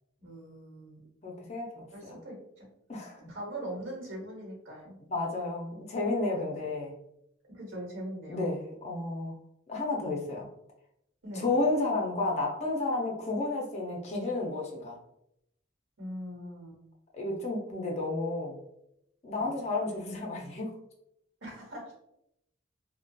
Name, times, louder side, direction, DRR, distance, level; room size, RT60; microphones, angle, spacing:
voice 1, 0.2-1.0 1.9-2.7 3.3-5.0 7.5-8.6 11.2-11.5 16.0-16.8 19.4-19.5 21.4-21.9, right 1 dB, 85° right, -2 dB, 1.0 m, -41 dB
voice 2, 1.2-2.2 2.9-3.2 5.1-7.0 8.3-9.4 9.7-10.5 11.3-15.0 17.1-18.6 19.2-20.7, left 2 dB, 35° left, -1 dB, 0.5 m, -32 dB
2.7 x 2.1 x 2.2 m, 0.79 s
head